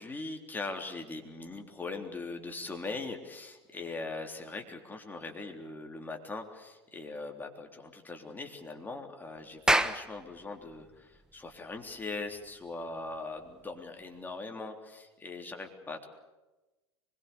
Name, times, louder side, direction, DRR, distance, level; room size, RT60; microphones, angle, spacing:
voice 1, 0.0-16.1, left 3 dB, 15° left, 2 dB, 3.5 m, -41 dB
Clapping, 9.4-14.3, right 1 dB, 5° right, 1.1 m, -33 dB
25.0 x 22.0 x 7.0 m, 1.1 s
figure-of-eight pair, 80°, 14 cm